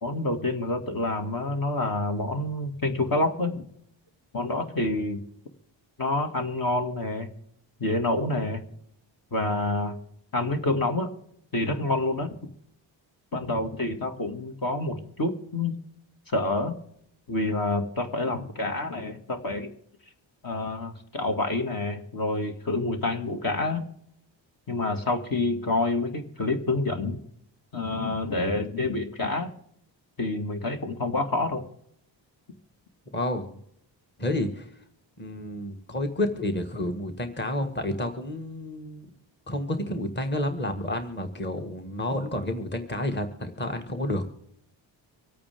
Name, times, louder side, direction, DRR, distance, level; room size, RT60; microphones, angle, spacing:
voice 1, 0.0-3.7 4.3-5.2 6.0-7.3 7.8-8.6 9.3-10.0 10.3-11.1 11.5-12.3 13.3-15.7 16.3-16.7 17.3-19.7 20.4-23.8 24.7-27.2 27.7-29.5 30.2-31.6, left 2 dB, 50° left, 4 dB, 2.1 m, -27 dB
voice 2, 33.1-33.6 34.2-34.7 35.2-39.1 39.5-44.3, left 1 dB, 25° left, 6 dB, 1.7 m, -30 dB
25.5 x 8.6 x 3.6 m, 0.72 s
cardioid pair, 85°, 46 cm